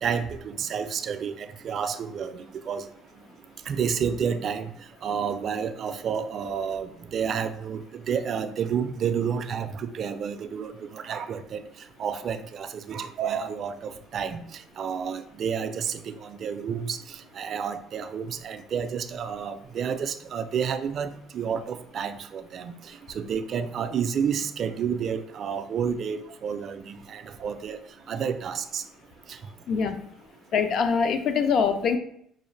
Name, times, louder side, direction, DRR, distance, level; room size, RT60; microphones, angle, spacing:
voice 1, 0.0-2.9 3.7-4.7 5.0-11.6 12.0-27.8 28.1-28.8 29.3-29.4, right 7 dB, 45° right, 9 dB, 0.3 m, -30 dB
voice 2, 30.5-32.0, left 6 dB, 55° left, 8 dB, 0.4 m, -23 dB
5.5 x 2.4 x 3.2 m, 0.70 s
cardioid pair, 120°, 0 cm